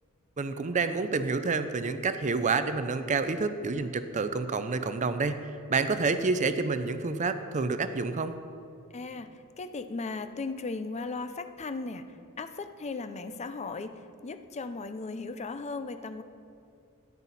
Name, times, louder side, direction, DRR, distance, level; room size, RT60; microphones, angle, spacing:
voice 1, 0.4-8.3, right 4 dB, 35° right, 10 dB, 0.5 m, -28 dB
voice 2, 8.9-16.2, left 3 dB, 30° left, 10 dB, 0.5 m, -37 dB
13.5 x 11.0 x 4.1 m, 2.5 s
head